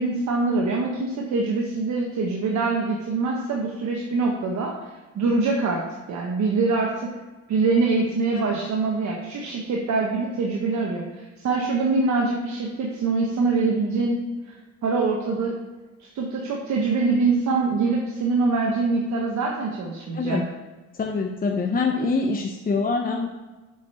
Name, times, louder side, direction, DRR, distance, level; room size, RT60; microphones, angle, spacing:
voice 1, 0.0-4.7 5.1-5.8 6.1-7.1 7.5-14.2 14.8-15.5 16.0-20.4, right 3 dB, 70° right, -1 dB, 1.3 m, -24 dB
voice 2, 20.9-23.3, left 4 dB, 30° left, 2 dB, 0.7 m, -25 dB
7.5 x 5.1 x 5.6 m, 1.2 s
cardioid pair, 90°, 30 cm